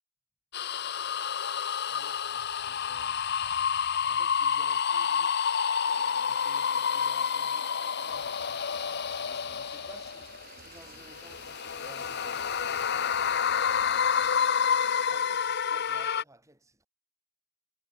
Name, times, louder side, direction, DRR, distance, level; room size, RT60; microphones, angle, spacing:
sound 1, 0.5-10.4 11.0-16.2, left 7 dB, 50° left, 0.8 m, -29 dB
voice 1, 1.9-3.2 4.1-5.4 6.3-11.5 11.7-14.4 15.0-16.9, right 1 dB, 15° right, 7.9 m, -57 dB
sound 2, 5.8-15.3, right 6 dB, 45° right, 2.5 m, -52 dB
sound 3, 8.1-14.4, right 2 dB, 75° right, 5.2 m, -60 dB
head